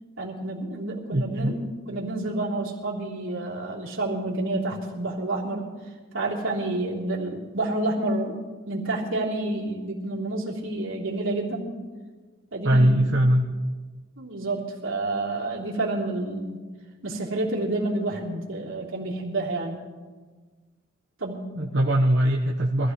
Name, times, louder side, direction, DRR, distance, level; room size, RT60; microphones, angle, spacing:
voice 1, 0.2-5.7 6.1-8.4 8.7-11.7 12.5-13.0 14.2-16.6 17.0-19.8 21.2-21.5, right 2 dB, 80° right, -3 dB, 3.4 m, -29 dB
voice 2, 1.1-1.5 12.6-13.5 21.5-22.9, right 1 dB, 60° right, -2 dB, 1.1 m, -21 dB
23.5 x 15.5 x 3.2 m, 1.4 s
head